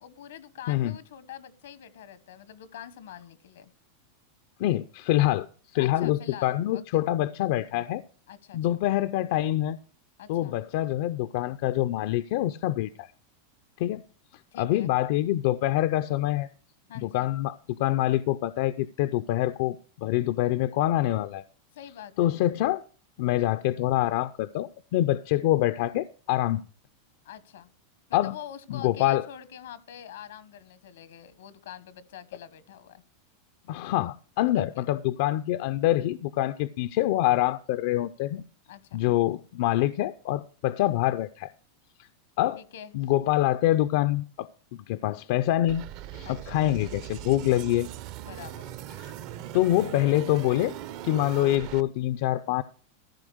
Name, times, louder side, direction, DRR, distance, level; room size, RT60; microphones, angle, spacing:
voice 1, 0.0-3.7 5.8-7.0 8.3-8.6 10.2-10.6 14.5-14.9 16.9-17.3 21.7-22.3 27.2-27.7 28.1-33.0 34.6-34.9 38.7-39.0 42.6-42.9 46.2-46.6 48.2-48.8, left 10 dB, 85° left, 1.2 m, -45 dB
voice 2, 4.6-5.5 5.7-8.0 8.5-9.8 10.3-13.1 13.8-14.0 14.6-16.5 17.0-21.4 22.2-22.8 23.2-26.6 28.1-28.3 28.7-29.3 33.7-38.4 38.9-41.5 42.4-42.6 42.9-45.9 46.1-47.9 49.0-49.1 49.5-50.7 51.0-52.6, left 14 dB, 60° left, 0.4 m, -25 dB
sound 1, 45.7-51.8, right 12 dB, 50° right, 0.7 m, -40 dB
14.5 x 5.0 x 6.3 m
supercardioid pair, 150°, 0 cm